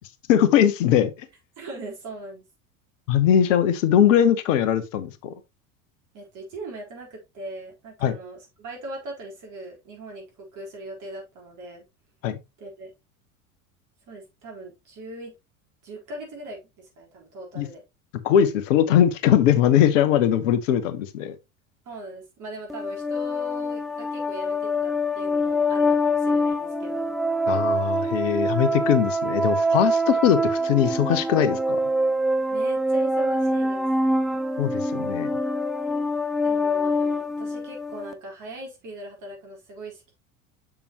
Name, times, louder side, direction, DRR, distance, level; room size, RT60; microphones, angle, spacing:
voice 1, 0.3-1.3 3.1-5.3 8.0-8.1 12.2-12.4 17.6-17.7 18.2-21.3 27.5-31.8 34.6-35.3, left 10 dB, 60° left, 1.1 m, -20 dB
voice 2, 1.6-2.4 6.1-11.8 12.6-12.9 14.1-15.3 15.8-17.8 21.8-27.2 32.5-33.9 36.4-40.1, right 2 dB, 45° right, 4.2 m, -40 dB
sound 1, 22.7-38.1, equal, ahead, 0.5 m, -25 dB
7.0 x 7.0 x 2.9 m
figure-of-eight pair, 75°, 43 cm